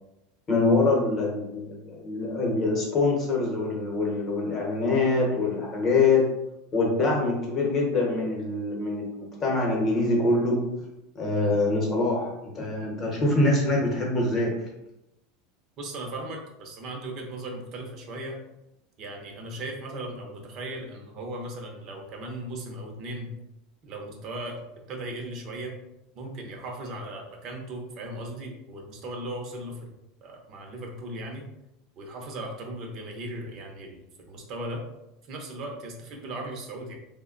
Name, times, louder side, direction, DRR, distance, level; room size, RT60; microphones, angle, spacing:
voice 1, 0.5-6.3 6.7-10.7 11.1-14.5, left 3 dB, 25° left, -2 dB, 1.0 m, -24 dB
voice 2, 15.8-18.4 19.0-23.3 23.8-24.6 24.9-25.8 26.2-29.9 30.2-31.4 32.0-34.8 35.3-36.9, right 1 dB, 35° right, 1 dB, 0.7 m, -37 dB
3.3 x 2.2 x 3.8 m, 0.89 s
supercardioid pair, 160°, 0 cm